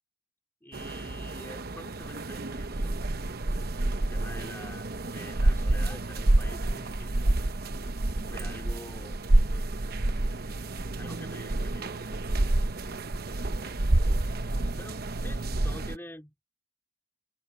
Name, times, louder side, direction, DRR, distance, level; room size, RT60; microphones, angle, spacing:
voice 1, 0.6-3.6 3.9-7.3 8.3-9.2 11.0-12.2 13.3-13.9 14.8-16.3, left 1 dB, 10° left, 3.6 m, -47 dB
sound 1, 0.7-16.0, right 2 dB, 55° right, 0.9 m, -28 dB
open air
head